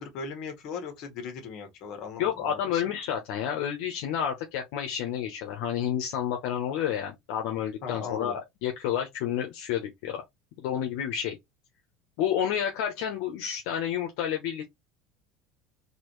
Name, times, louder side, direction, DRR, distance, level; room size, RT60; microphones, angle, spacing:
voice 1, 0.0-2.8 7.8-8.4, left 5 dB, 50° left, 1.8 m, -38 dB
voice 2, 2.2-10.2 10.6-11.4 12.2-14.6, left 9 dB, 75° left, 1.0 m, -30 dB
4.1 x 2.7 x 3.2 m
cardioid pair, 145°, 0 cm